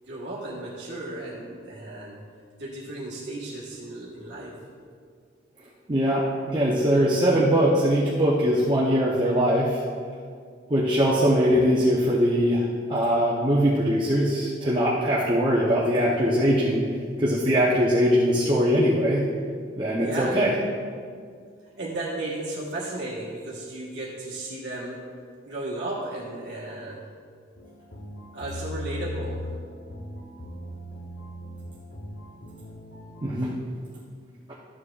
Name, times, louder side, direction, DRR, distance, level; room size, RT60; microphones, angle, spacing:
voice 1, 0.0-2.2 2.6-4.5 20.0-20.4 21.8-25.0 25.4-27.1 28.3-29.5, right 2 dB, 60° right, -7 dB, 1.3 m, -34 dB
voice 2, 5.9-6.3 6.5-9.8 10.7-16.8 17.2-19.3 19.8-20.5 33.2-33.5, equal, 25° right, -6 dB, 0.8 m, -21 dB
sound 1, 27.6-33.3, left 1 dB, 60° left, 0.9 m, -38 dB
12.5 x 7.4 x 2.4 m, 2.1 s
head